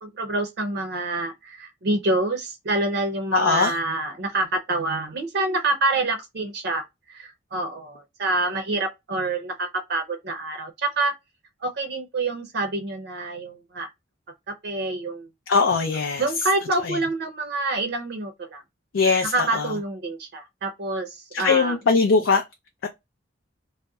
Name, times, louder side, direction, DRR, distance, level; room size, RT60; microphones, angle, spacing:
voice 1, 0.0-11.1 11.6-13.9 14.5-15.3 16.2-18.6 19.3-21.8, right 2 dB, 60° right, 0.5 m, -27 dB
voice 2, 3.3-3.7 15.5-16.2 16.8-17.0 18.9-19.7 21.3-22.4 22.8-22.9, left 4 dB, 80° left, 0.4 m, -21 dB
2.6 x 2.1 x 2.2 m
head